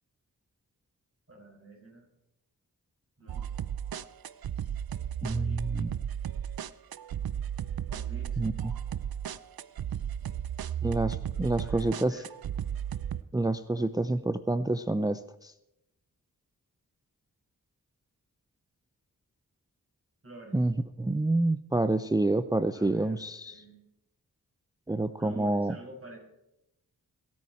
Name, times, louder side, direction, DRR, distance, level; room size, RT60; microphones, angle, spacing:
voice 1, 1.3-2.1 3.2-3.4 5.2-5.7 7.9-8.4 10.2-10.3 11.3-12.3 20.2-20.6 22.7-23.8 25.2-26.2, right 2 dB, 35° right, -1 dB, 6.2 m, -49 dB
sound 1, 3.3-13.2, right 9 dB, 65° right, 0.6 m, -34 dB
voice 2, 5.2-5.9 8.4-8.5 10.8-12.2 13.3-15.5 20.5-23.6 24.9-25.8, right 2 dB, 10° right, 12 dB, 0.5 m, -28 dB
22.0 x 9.2 x 4.4 m, 0.86 s
cardioid pair, 55°, 38 cm